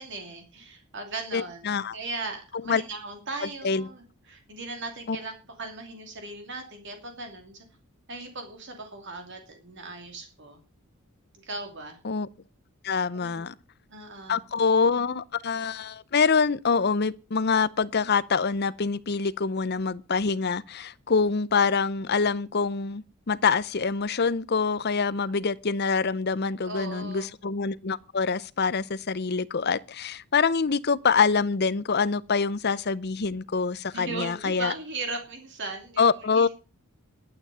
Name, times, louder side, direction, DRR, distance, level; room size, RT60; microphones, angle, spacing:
voice 1, 0.0-5.3 5.6-7.6 8.1-10.6 11.4-12.0 13.1-13.5 13.9-14.4 26.6-27.3 33.9-36.5, right 3 dB, 50° right, 2.7 m, -38 dB
voice 2, 1.3-2.0 2.7-2.8 3.4-3.9 5.1-5.2 12.0-12.3 12.8-13.5 14.3-34.7 36.0-36.5, left 5 dB, 45° left, 0.6 m, -25 dB
12.0 x 8.8 x 6.9 m
head